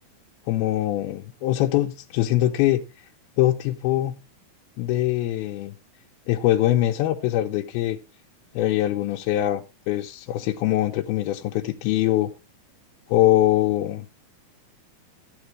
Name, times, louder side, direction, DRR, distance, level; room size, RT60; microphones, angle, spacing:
voice 1, 0.5-3.1 3.4-4.2 4.8-5.7 6.3-8.0 8.5-12.3 13.1-14.1, left 14 dB, 90° left, 2.7 m, -23 dB
14.0 x 9.7 x 3.1 m
omnidirectional pair, 4.4 m